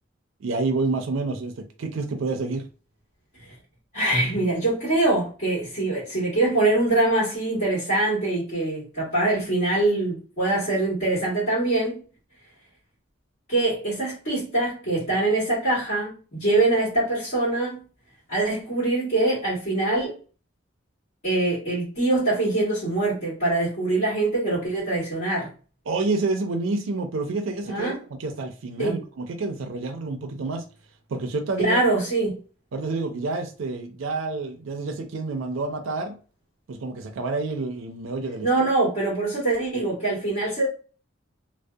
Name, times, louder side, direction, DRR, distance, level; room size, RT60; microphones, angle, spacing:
voice 1, 0.4-2.7 25.9-30.7 31.1-31.8 32.7-36.2 36.7-38.5, right 3 dB, 80° right, 0.4 m, -28 dB
voice 2, 3.9-12.0 13.5-17.8 18.3-20.2 21.2-25.5 27.6-28.0 28.8-29.0 31.6-32.4 38.4-40.7, right 2 dB, 50° left, 1.4 m, -23 dB
2.6 x 2.1 x 2.2 m
head